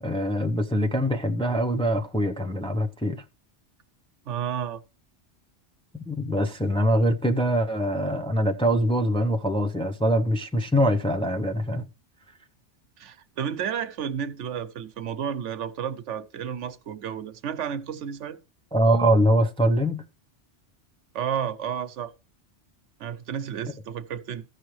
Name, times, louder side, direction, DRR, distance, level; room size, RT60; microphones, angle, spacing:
voice 1, 0.0-3.2 5.9-11.8 18.7-20.0, equal, 5° left, 0.5 m, -23 dB
voice 2, 4.3-4.8 13.0-18.4 21.1-22.1 23.0-24.4, right 8 dB, 80° right, 1.1 m, -32 dB
15.5 x 6.4 x 3.2 m
omnidirectional pair, 1.2 m